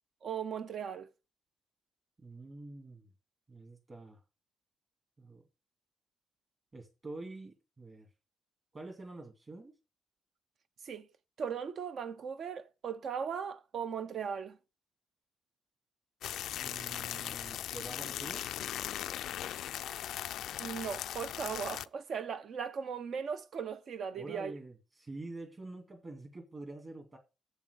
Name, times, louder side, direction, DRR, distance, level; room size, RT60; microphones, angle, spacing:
voice 1, 0.2-1.1 10.8-11.1 11.4-14.6 20.6-24.5, right 7 dB, 55° right, 1.0 m, -38 dB
voice 2, 2.2-3.1 3.5-4.2 5.2-5.4 6.7-8.1 8.7-9.7 16.5-18.5 24.2-27.2, right 2 dB, 25° right, 2.4 m, -47 dB
sound 1, 16.2-21.9, left 11 dB, 85° left, 0.4 m, -39 dB
7.9 x 7.2 x 6.5 m
cardioid pair, 155°, 0 cm